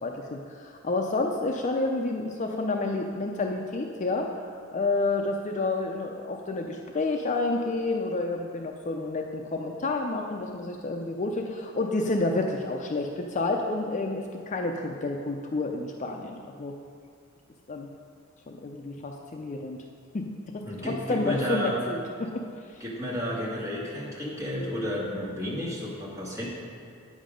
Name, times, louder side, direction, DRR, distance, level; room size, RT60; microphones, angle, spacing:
voice 1, 0.0-4.3 4.7-16.7 17.7-17.9 18.5-19.8 20.1-22.4, left 2 dB, 35° left, 2 dB, 0.5 m, -29 dB
voice 2, 20.6-21.8 22.8-26.5, left 1 dB, 15° right, -7 dB, 2.1 m, -32 dB
9.1 x 7.3 x 5.1 m, 2.3 s
head